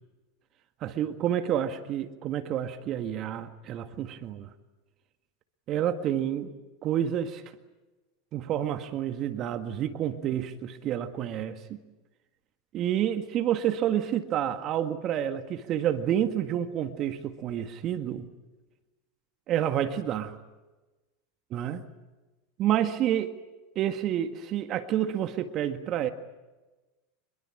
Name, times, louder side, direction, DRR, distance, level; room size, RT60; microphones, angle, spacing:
voice 1, 0.8-4.5 5.7-6.5 6.8-7.4 8.3-11.8 12.7-18.3 19.5-20.4 21.5-21.8 22.6-23.3 23.7-26.1, right 10 dB, 45° right, 8 dB, 1.7 m, -29 dB
25.5 x 22.5 x 8.8 m, 1.1 s
hypercardioid pair, 90°, 0 cm